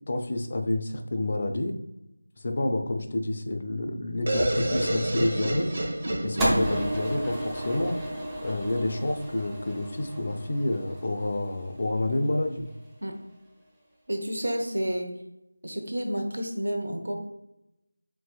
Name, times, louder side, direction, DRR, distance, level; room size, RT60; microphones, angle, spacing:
voice 1, 0.1-1.7 2.4-5.7 6.2-7.9 8.4-12.6, left 1 dB, 45° left, 5 dB, 0.4 m, -29 dB
sound 1, 4.3-8.0, right 1 dB, 50° right, 1.0 m, -29 dB
sound 2, 6.4-12.7, right 1 dB, 10° right, 0.5 m, -33 dB
voice 2, 14.1-15.1 15.6-17.3, equal, 80° right, 4 dB, 0.9 m, -30 dB
4.6 x 3.7 x 2.3 m, 0.89 s
figure-of-eight pair, 170°, 0 cm